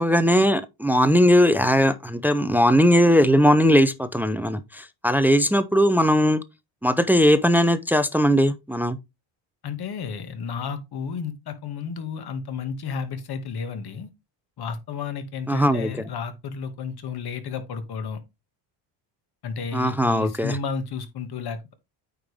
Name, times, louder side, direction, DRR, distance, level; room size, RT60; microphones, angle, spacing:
voice 1, 0.0-6.4 6.8-9.0 15.5-15.9 19.7-20.6, equal, 5° right, 0.4 m, -19 dB
voice 2, 9.6-14.1 14.6-18.2 19.4-21.7, left 5 dB, 50° left, 1.9 m, -32 dB
9.0 x 5.2 x 3.4 m
cardioid pair, 125°, 50 cm